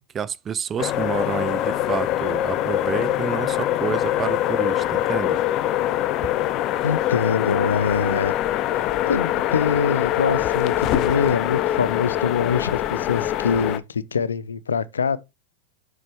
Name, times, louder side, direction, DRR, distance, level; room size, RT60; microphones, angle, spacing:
voice 1, 0.0-5.4, right 7 dB, 25° right, 0.5 m, -29 dB
sound 1, 0.8-13.8, left 13 dB, 45° left, 0.5 m, -23 dB
voice 2, 6.8-8.3 9.1-15.2, left 6 dB, 85° left, 0.6 m, -24 dB
6.9 x 6.3 x 3.1 m
hypercardioid pair, 100°, 0 cm